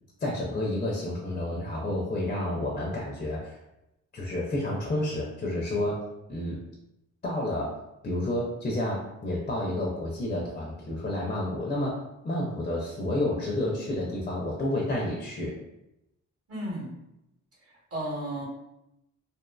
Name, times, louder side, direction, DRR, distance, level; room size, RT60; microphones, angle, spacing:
voice 1, 0.2-3.6 4.1-6.0 6.3-6.6 7.2-7.7 8.0-15.5, left 1 dB, 25° left, -3 dB, 0.4 m, -30 dB
voice 2, 16.5-16.9 17.6-18.4, right 1 dB, 45° right, -5 dB, 1.0 m, -34 dB
2.4 x 2.4 x 2.2 m, 0.88 s
cardioid pair, 115°, 32 cm